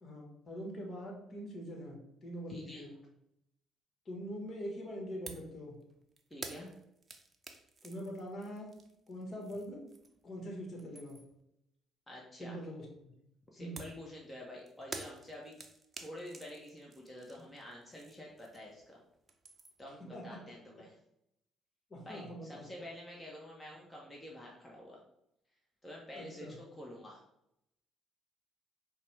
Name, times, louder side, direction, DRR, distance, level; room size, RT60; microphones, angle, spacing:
voice 1, 0.0-2.9 4.0-5.8 7.8-8.7 9.1-9.8 10.2-11.2 12.4-13.1 13.6-13.8 20.1-20.4 21.9-22.6 26.1-26.5, equal, 45° left, 0 dB, 1.4 m, -43 dB
voice 2, 2.5-2.9 6.3-6.7 12.1-12.6 13.5-15.5 16.0-19.0 19.8-20.9 22.0-25.0 25.8-27.2, left 1 dB, 15° left, -3 dB, 0.9 m, -48 dB
sound 1, 5.3-5.5 5.8-10.3 10.6-11.4 13.8-18.9 19.1-19.9, right 3 dB, 35° right, 0.6 m, -50 dB
4.7 x 2.3 x 3.3 m, 0.81 s
hypercardioid pair, 50°, 0 cm